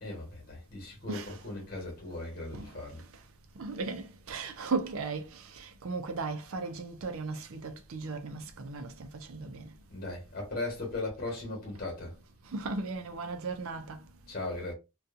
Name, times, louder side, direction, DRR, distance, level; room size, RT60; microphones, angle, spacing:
voice 1, 0.0-3.0 9.9-12.2 14.3-14.7, left 2 dB, 40° left, 1.1 m, -38 dB
voice 2, 1.1-1.4 2.5-2.8 3.6-9.7 12.5-14.1, right 3 dB, 70° right, 0.5 m, -36 dB
2.7 x 2.3 x 2.4 m
head